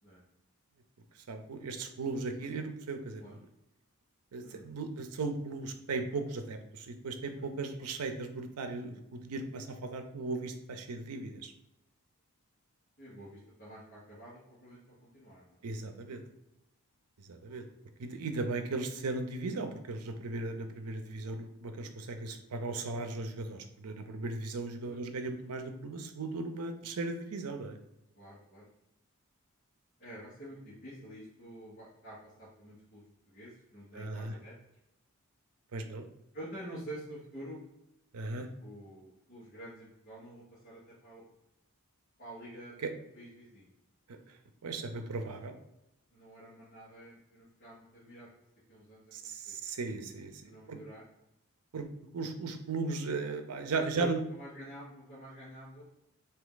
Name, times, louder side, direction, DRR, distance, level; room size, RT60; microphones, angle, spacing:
voice 1, 1.2-3.4 4.3-11.5 15.6-16.2 17.2-17.6 18.0-27.8 33.9-34.3 35.7-36.0 38.1-38.5 42.8-42.9 44.1-44.2 44.6-45.6 49.1-50.3 50.7-50.8 51.7-51.9 52.1-54.2, right 3 dB, 90° right, 7 dB, 0.6 m, -37 dB
voice 2, 7.4-7.7 13.0-15.6 24.8-25.3 28.1-28.7 30.0-33.0 33.3-34.5 36.3-37.6 38.6-41.2 42.2-42.7 43.1-43.7 46.1-48.3 48.7-49.6 50.4-51.0 53.7-55.8, equal, 40° left, -9 dB, 1.3 m, -48 dB
3.4 x 2.8 x 3.8 m, 0.88 s
head